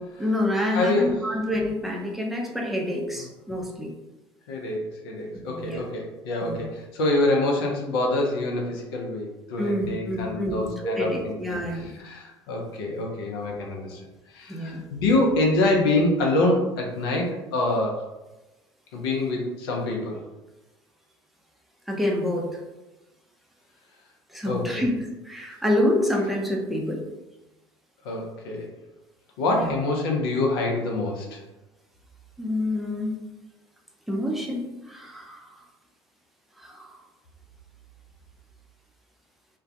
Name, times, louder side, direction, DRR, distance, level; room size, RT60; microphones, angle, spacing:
voice 1, 0.2-3.9 5.5-5.8 6.4-6.6 9.6-11.9 14.5-14.8 21.9-22.5 24.3-27.0 29.5-29.7 32.4-33.1 34.1-35.5 36.6-37.0, left 1 dB, ahead, -1 dB, 0.5 m, -27 dB
voice 2, 0.7-1.2 4.5-14.0 14.3-18.0 18.9-20.2 24.5-24.8 28.0-28.7 29.4-31.4, left 2 dB, 75° left, -1 dB, 0.5 m, -26 dB
2.2 x 2.1 x 2.6 m, 1.1 s
hypercardioid pair, 65°, 13 cm